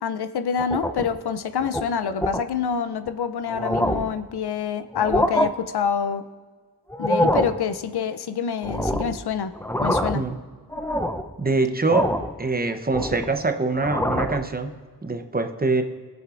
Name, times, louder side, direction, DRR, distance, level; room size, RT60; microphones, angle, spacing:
voice 1, 0.0-6.3 7.0-9.5 9.8-10.2, left 7 dB, 70° left, 11 dB, 0.6 m, -26 dB
sound 1, 0.6-1.2 1.6-1.8 2.2-2.4 3.1-3.2 3.5-4.2 4.9-5.5 6.9-7.6 8.6-9.2 9.6-10.3 10.7-11.3 11.9-12.3 12.7-13.4 13.8-14.4, equal, 5° left, 0.6 m, -25 dB
voice 2, 11.4-14.7 15.0-15.8, right 3 dB, 25° right, 7 dB, 0.8 m, -24 dB
22.0 x 7.9 x 2.5 m, 1.5 s
wide cardioid pair, 70°, 40 cm